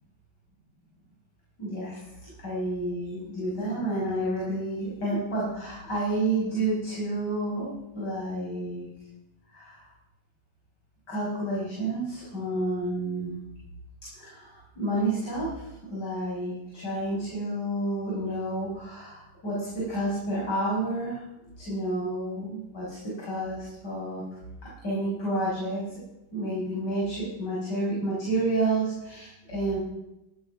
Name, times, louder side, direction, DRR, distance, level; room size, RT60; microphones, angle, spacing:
voice 1, 1.6-2.1 2.4-8.9 9.5-9.9 11.1-13.3 14.1-21.2 21.6-24.2 24.8-25.8 26.3-29.8, right 1 dB, 60° left, -7 dB, 6.4 m, -30 dB
17.0 x 11.5 x 6.0 m, 0.92 s
omnidirectional pair, 2.1 m